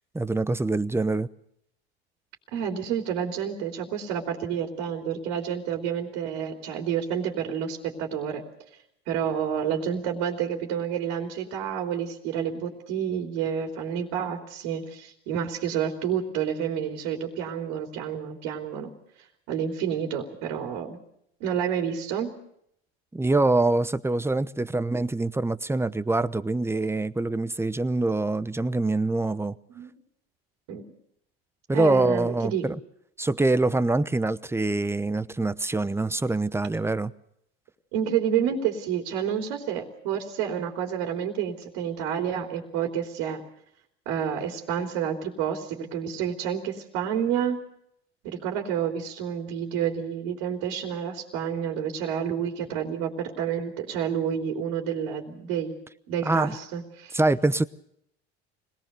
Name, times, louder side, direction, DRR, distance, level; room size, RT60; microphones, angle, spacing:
voice 1, 0.1-1.3 23.1-29.6 31.7-32.8 33.2-37.1 56.2-56.6 57.1-57.7, right 2 dB, 10° right, 0.9 m, -25 dB
voice 2, 2.5-8.4 9.1-18.9 19.5-21.0 21.4-22.3 29.7-29.9 30.7-30.8 31.7-32.6 37.9-43.4 44.1-47.6 48.2-55.7 56.1-57.2, right 8 dB, 70° right, 3.5 m, -29 dB
25.5 x 19.0 x 6.7 m
hypercardioid pair, 85°, 31 cm